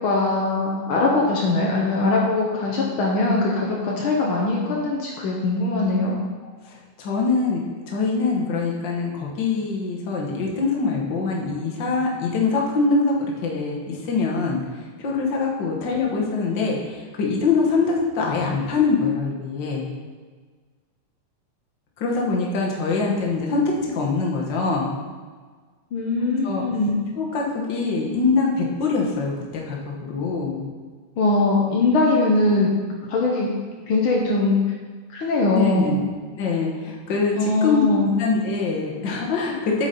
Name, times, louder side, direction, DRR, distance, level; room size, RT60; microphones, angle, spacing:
voice 1, 0.0-6.1 25.9-26.9 31.2-32.7 33.1-33.5 33.9-34.6 35.1-35.9 37.4-38.1, left 2 dB, 80° left, -3 dB, 1.1 m, -21 dB
voice 2, 6.6-7.6 7.9-19.9 22.0-24.9 26.4-26.6 27.1-30.6 35.5-36.0 36.4-37.8 38.2-39.9, left 4 dB, 55° left, -2 dB, 1.3 m, -24 dB
8.5 x 6.7 x 4.3 m, 1.5 s
omnidirectional pair, 3.8 m